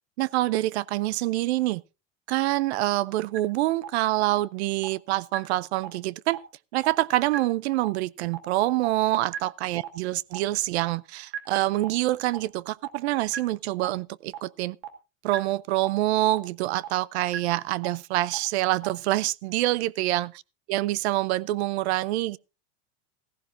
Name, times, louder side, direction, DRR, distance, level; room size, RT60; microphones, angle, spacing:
voice 1, 0.2-1.8 2.3-6.4 6.7-14.8 15.2-20.3 20.7-22.4, right 17 dB, 85° right, 0.6 m, -26 dB
sound 1, 3.3-3.4 3.8-3.9 4.3-4.4 4.8-4.9 5.3-5.4 5.8-5.9 6.3-6.4 6.8-6.9 7.3-7.4 7.8-7.9 8.3-8.4 8.8-8.9 9.3-9.4 9.8-9.9 10.3-10.4 10.8-10.9 11.3-11.4 11.8-11.9 12.3-12.4 12.8-12.9 13.3-13.4 13.8-13.9 14.3-14.4 14.8-14.9 15.3-15.4 15.8-15.9 16.3-16.4 16.8-16.9 17.3-17.4 17.8-17.9 18.3-18.4 18.8-18.9, right 11 dB, 60° right, 1.8 m, -33 dB
15.5 x 15.0 x 2.6 m
supercardioid pair, 175°, 32 cm